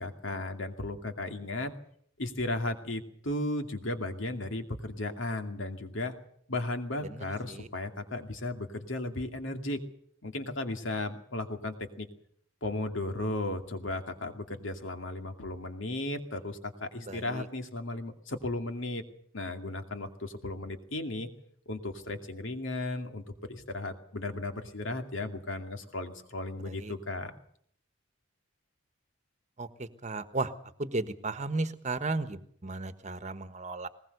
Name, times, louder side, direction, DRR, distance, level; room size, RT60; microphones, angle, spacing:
voice 1, 0.0-1.7 2.2-6.1 6.5-9.8 10.2-12.1 12.6-19.0 19.3-21.3 21.7-27.3, left 2 dB, 70° left, 6 dB, 2.4 m, -35 dB
voice 2, 7.0-7.7 17.0-17.5 26.6-26.9 29.6-30.5 30.8-33.9, right 3 dB, 35° right, 11 dB, 1.3 m, -35 dB
20.5 x 19.5 x 6.7 m, 0.63 s
head